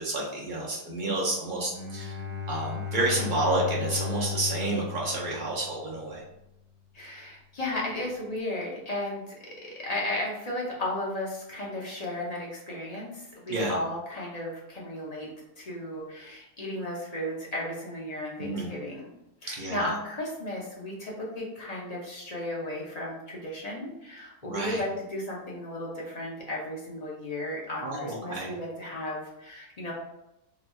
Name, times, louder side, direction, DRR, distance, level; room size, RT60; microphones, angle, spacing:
voice 1, 0.0-2.2 2.5-6.2 13.5-13.8 18.4-18.7 19.5-19.9 24.4-24.8 27.8-28.5, right 2 dB, 55° right, -4 dB, 0.5 m, -30 dB
Bowed string instrument, 1.7-6.1, left 6 dB, 80° right, 1.2 m, -35 dB
voice 2, 6.9-9.2 9.6-15.3 15.6-19.1 19.4-29.9, left 1 dB, 50° left, -4 dB, 0.5 m, -34 dB
4.0 x 2.8 x 2.2 m, 0.89 s
omnidirectional pair, 1.6 m